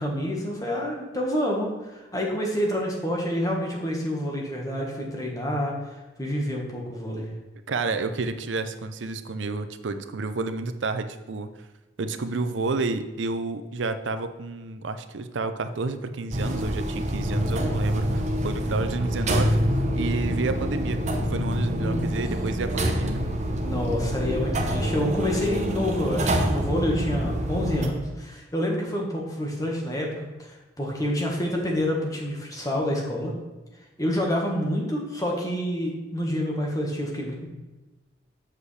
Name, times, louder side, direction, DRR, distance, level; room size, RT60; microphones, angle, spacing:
voice 1, 0.0-5.7 6.2-7.3 21.8-22.0 23.6-33.3 34.0-37.5, equal, 20° left, -1 dB, 1.4 m, -28 dB
voice 2, 7.7-11.5 12.0-19.6 19.9-21.0 21.3-23.2, right 3 dB, 85° right, 10 dB, 0.6 m, -30 dB
sound 1, 16.3-27.9, equal, 40° right, 0.8 m, -26 dB
7.5 x 6.5 x 3.3 m, 1.1 s
head